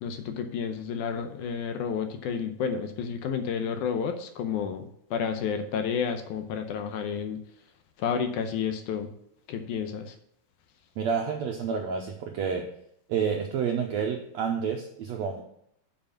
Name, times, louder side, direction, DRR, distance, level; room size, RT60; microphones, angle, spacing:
voice 1, 0.0-4.9 5.1-7.4 8.0-9.1 9.5-10.1, left 7 dB, 75° left, 6 dB, 2.0 m, -30 dB
voice 2, 11.0-12.7 13.1-15.4, right 6 dB, 90° right, 2 dB, 1.5 m, -29 dB
7.2 x 5.1 x 7.1 m, 0.73 s
omnidirectional pair, 4.0 m